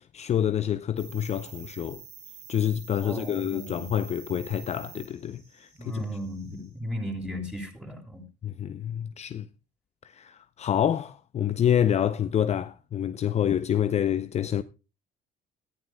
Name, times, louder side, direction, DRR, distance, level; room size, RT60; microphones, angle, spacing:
voice 1, 0.0-2.0 2.5-6.0 6.5-6.7 8.4-9.5 10.0-14.6, left 10 dB, 40° left, 0.5 m, -27 dB
sound 1, 1.0-6.7, right 7 dB, 80° right, 5.8 m, -48 dB
voice 2, 3.0-3.9 5.8-8.2, equal, 5° right, 6.4 m, -35 dB
18.5 x 14.5 x 2.2 m
cardioid pair, 110°, 17 cm